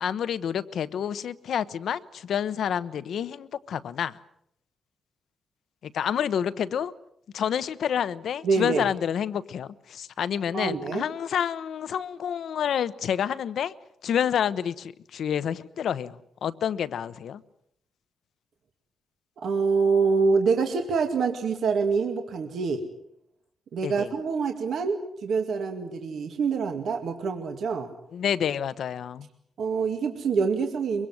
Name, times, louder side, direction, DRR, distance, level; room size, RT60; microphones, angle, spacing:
voice 1, 0.0-4.2 5.8-6.9 7.3-13.7 14.0-17.4 23.8-24.1 28.1-29.3, left 8 dB, 65° left, 0.9 m, -29 dB
voice 2, 8.4-8.9 10.5-11.0 19.4-22.8 23.7-27.9 29.6-31.1, right 5 dB, 65° right, 2.2 m, -26 dB
23.5 x 23.5 x 7.8 m
wide cardioid pair, 170°, 0 cm